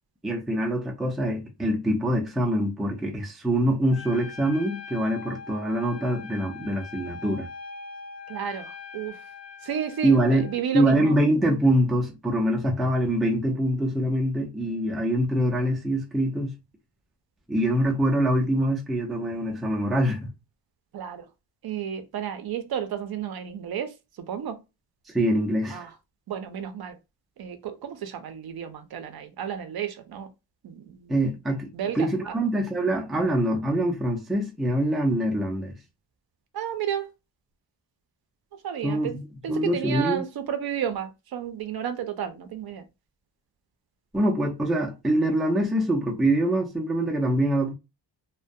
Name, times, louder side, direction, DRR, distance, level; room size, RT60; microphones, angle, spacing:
voice 1, 0.2-7.5 10.0-10.5 10.7-16.5 17.5-20.3 25.1-25.9 31.1-31.7 31.9-35.8 38.8-39.2 39.5-40.2 44.1-47.7, right 1 dB, ahead, 0.3 m, -24 dB
Trumpet, 3.9-10.6, left 5 dB, 65° left, 1.0 m, -42 dB
voice 2, 8.3-9.2 9.6-11.1 20.9-21.2 21.6-23.9 24.2-24.6 25.7-25.9 26.3-27.0 27.4-30.3 30.6-31.2 31.7-32.3 36.5-37.1 38.5-42.8, right 9 dB, 60° right, 0.5 m, -32 dB
2.2 x 2.1 x 2.5 m
wide cardioid pair, 150°, 43 cm